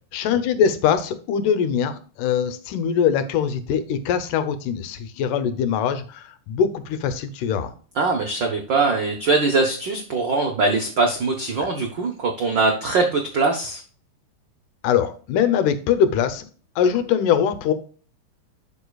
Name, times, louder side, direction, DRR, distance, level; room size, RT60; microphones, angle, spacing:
voice 1, 0.1-7.7 11.6-11.7 14.8-16.5 16.8-17.7, left 8 dB, 85° left, 11 dB, 2.4 m, -22 dB
voice 2, 7.9-13.8, right 3 dB, 75° right, 2 dB, 1.0 m, -22 dB
12.5 x 4.8 x 2.3 m, 0.40 s
omnidirectional pair, 3.6 m